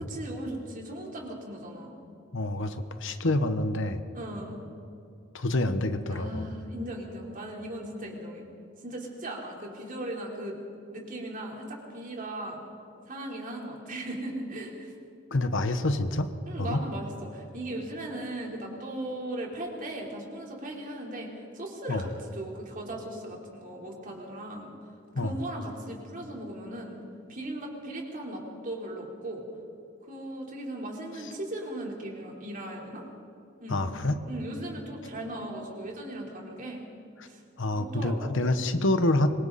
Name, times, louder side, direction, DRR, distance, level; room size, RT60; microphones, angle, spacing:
voice 1, 0.0-1.9 4.1-4.6 6.1-8.4 8.8-10.6 10.9-12.6 13.1-14.9 16.5-24.7 25.1-27.0 27.3-29.4 30.0-33.0 33.6-33.9 34.3-36.8 37.3-37.4 37.7-38.3, right 1 dB, 40° right, -1 dB, 4.0 m, -38 dB
voice 2, 2.3-4.0 5.3-6.5 15.3-16.3 16.6-16.8 21.9-22.0 25.1-25.3 33.7-34.2 37.2-37.3 37.6-39.3, left 2 dB, 65° left, 9 dB, 1.2 m, -27 dB
26.0 x 24.0 x 4.2 m, 2.5 s
head